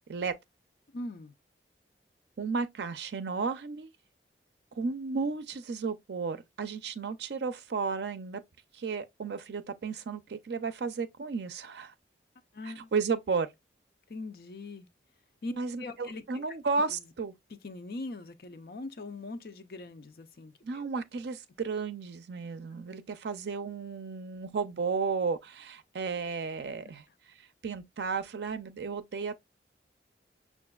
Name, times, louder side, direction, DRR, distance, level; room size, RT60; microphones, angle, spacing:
voice 1, 0.9-1.3 12.5-12.9 14.1-14.9 15.4-16.4 16.9-17.1 17.5-20.8 26.8-26.9, left 2 dB, 55° left, 0.5 m, -41 dB
voice 2, 2.4-3.9 4.7-8.4 8.7-11.9 12.6-13.5 15.6-17.3 20.6-27.0 27.6-29.4, right 4 dB, 75° right, 0.4 m, -33 dB
5.8 x 2.4 x 2.2 m
head